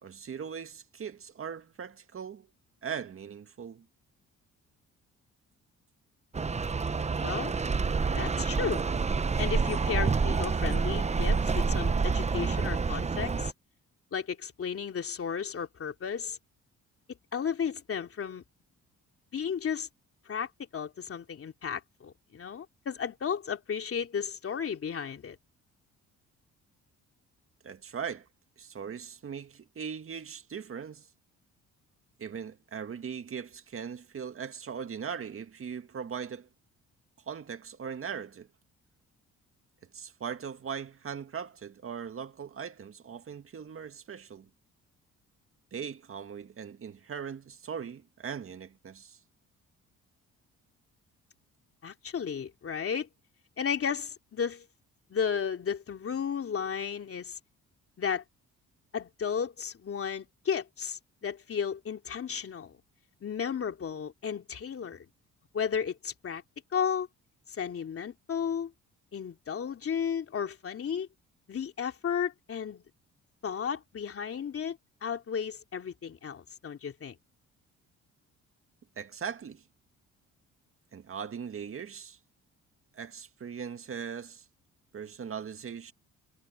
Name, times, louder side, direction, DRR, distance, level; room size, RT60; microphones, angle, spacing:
voice 1, 0.0-2.5 2.8-3.9 27.6-28.3 28.6-31.1 32.2-36.5 37.3-38.5 39.9-44.5 45.7-49.2 79.0-79.6 80.9-82.2 82.9-84.5 84.9-85.9, right 7 dB, 45° right, 1.9 m, -39 dB
sound 1, 6.3-13.5, right 4 dB, 20° right, 0.9 m, -28 dB
voice 2, 8.1-8.8 9.4-13.5 14.1-16.4 17.3-18.4 19.3-19.9 20.2-25.4 51.8-53.1 53.6-54.6 55.1-57.4 58.0-58.2 58.9-62.8 63.2-65.0 65.5-66.4 66.7-67.1 67.5-68.7 69.1-71.1 71.5-72.8 73.4-77.2, left 7 dB, 50° left, 3.0 m, -34 dB
cardioid pair, 90°, 30 cm